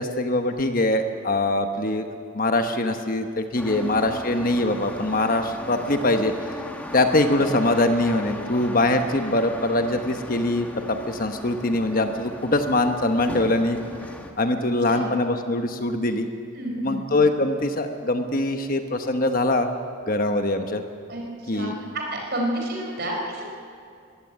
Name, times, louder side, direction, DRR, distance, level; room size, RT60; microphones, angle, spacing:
voice 1, 0.0-2.1 2.3-6.3 6.9-13.8 14.4-16.3 16.8-19.7 20.1-20.8 21.5-21.7, left 2 dB, 40° left, 6 dB, 1.1 m, -23 dB
sound 1, 3.6-14.3, left 1 dB, 5° left, 1.4 m, -37 dB
voice 2, 16.6-17.0 21.1-21.7 21.9-23.4, right 1 dB, 50° right, 0 dB, 5.0 m, -30 dB
21.5 x 15.5 x 9.0 m, 2.3 s
head